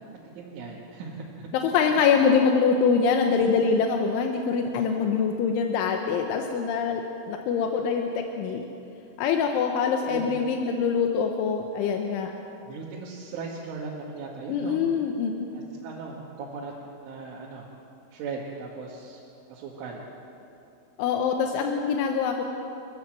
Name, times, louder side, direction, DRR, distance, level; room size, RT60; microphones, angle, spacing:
voice 1, 0.4-1.5 3.5-3.6 10.1-10.4 12.7-14.8 15.5-16.7 17.0-17.7 18.1-19.2 19.5-20.0, right 4 dB, 90° right, -4 dB, 4.4 m, -38 dB
voice 2, 1.6-7.0 7.3-8.1 8.4-8.6 9.2-12.3 14.5-15.5 21.0-22.4, left 6 dB, 85° left, 3 dB, 3.5 m, -24 dB
29.5 x 14.5 x 7.7 m, 2.8 s
omnidirectional pair, 5.4 m